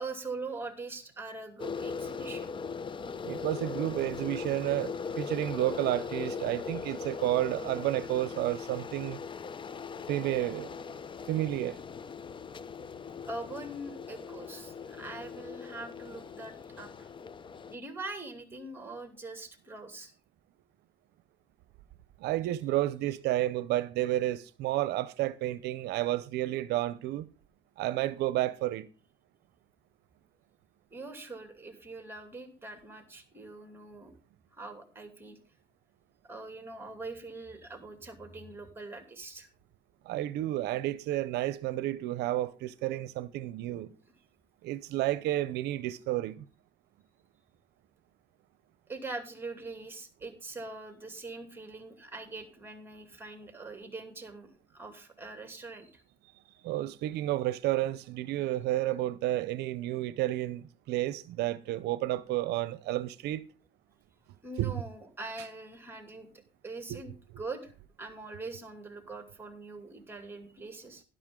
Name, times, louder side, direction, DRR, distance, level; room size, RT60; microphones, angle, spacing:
voice 1, 0.0-2.5 13.3-17.1 17.7-20.1 30.9-34.1 34.5-35.4 36.2-39.5 48.9-56.0 64.4-66.3 66.6-71.0, right 3 dB, 15° right, 2.6 m, -43 dB
sound 1, 1.6-17.8, left 5 dB, 30° left, 0.6 m, -40 dB
voice 2, 3.2-9.2 10.1-10.7 11.3-11.8 22.2-27.3 27.8-28.9 40.1-43.9 44.6-46.4 56.6-63.4 64.6-64.7 66.9-67.0, right 15 dB, 80° right, 0.6 m, -31 dB
12.0 x 11.0 x 3.7 m
cardioid pair, 110°, 17 cm